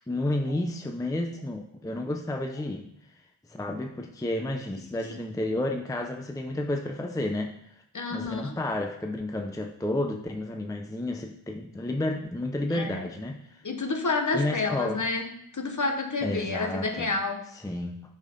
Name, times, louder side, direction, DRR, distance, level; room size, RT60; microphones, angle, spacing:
voice 1, 0.1-3.2 3.5-7.8 8.1-13.6 14.3-15.0 16.2-17.1 17.6-18.0, left 1 dB, 5° left, 3 dB, 0.6 m, -31 dB
voice 2, 7.9-8.6 12.7-13.1 13.6-15.3 15.5-17.5, left 3 dB, 40° left, 5 dB, 1.0 m, -29 dB
6.4 x 5.6 x 5.1 m, 0.74 s
wide cardioid pair, 105°, 49 cm